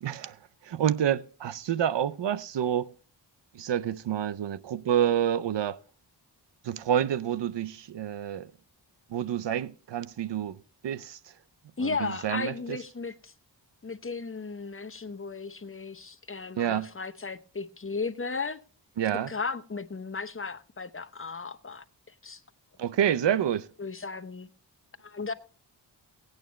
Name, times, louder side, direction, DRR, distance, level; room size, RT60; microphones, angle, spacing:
voice 1, 0.0-2.9 3.5-5.8 6.6-8.5 9.1-10.6 10.8-11.2 11.8-12.8 16.6-16.9 19.0-19.3 22.8-23.7, right 10 dB, 75° right, 0.6 m, -28 dB
voice 2, 11.8-13.3 13.8-18.6 19.3-22.4 23.8-24.5 25.0-25.3, left 4 dB, 30° left, 0.9 m, -35 dB
17.0 x 8.9 x 3.1 m
cardioid pair, 65°, 43 cm